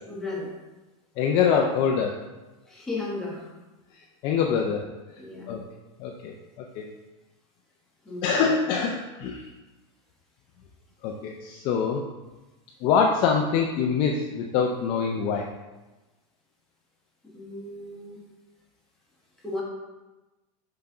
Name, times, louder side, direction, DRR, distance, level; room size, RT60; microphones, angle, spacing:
voice 1, 0.1-0.5 2.7-3.5 5.2-5.5 8.0-8.5 17.2-18.3 19.4-19.6, left 2 dB, ahead, -5 dB, 1.2 m, -35 dB
voice 2, 1.2-2.2 4.2-4.8 5.5-5.6 6.0-6.3 6.8-6.9 8.2-9.4 11.0-12.0 12.8-15.5, left 6 dB, 30° left, 1 dB, 0.5 m, -24 dB
5.8 x 5.7 x 3.8 m, 1.1 s
supercardioid pair, 175°, 16 cm